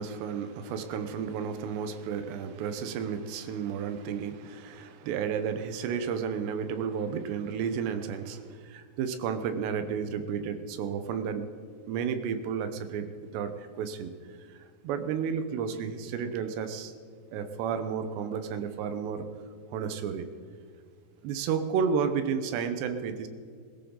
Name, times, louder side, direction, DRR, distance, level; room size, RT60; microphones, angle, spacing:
voice 1, 0.0-11.5 11.9-13.1 13.3-14.1 14.8-16.9 17.3-19.3 19.7-20.3 21.2-23.3, right 7 dB, 90° right, 8 dB, 3.2 m, -32 dB
21.5 x 14.0 x 3.9 m, 2.2 s
omnidirectional pair, 4.8 m